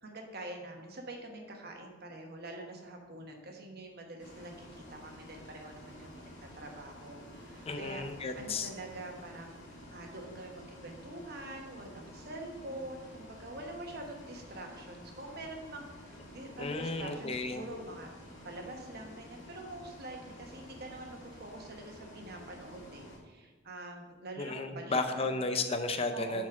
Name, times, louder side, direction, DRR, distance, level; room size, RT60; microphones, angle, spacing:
voice 1, 0.0-8.0 8.3-9.6 9.9-18.1 18.4-25.4 26.1-26.5, right 1 dB, 55° right, 2 dB, 1.2 m, -45 dB
Bus, 4.2-23.2, equal, 70° left, 2.0 m, -51 dB
voice 2, 7.6-8.7 16.6-17.6 24.4-26.5, left 3 dB, 30° left, 7 dB, 0.6 m, -33 dB
8.5 x 4.2 x 5.9 m, 1.3 s
head